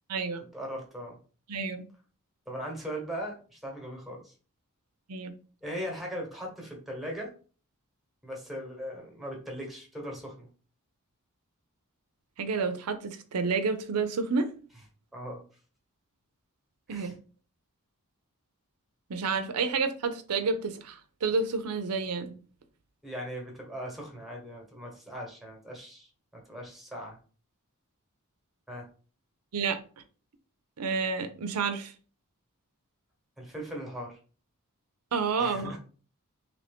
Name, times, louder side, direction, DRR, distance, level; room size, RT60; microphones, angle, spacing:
voice 1, 0.5-1.2 2.5-4.3 5.6-7.3 8.2-10.5 15.1-15.4 16.9-17.1 23.0-27.2 28.7-28.9 33.4-34.2 35.4-35.8, equal, ahead, 1.0 m, -39 dB
voice 2, 1.5-1.8 5.1-5.3 12.4-14.5 16.9-17.1 19.1-22.3 29.5-29.8 30.8-31.9 35.1-35.8, right 4 dB, 85° right, 0.5 m, -29 dB
3.0 x 2.6 x 3.4 m
head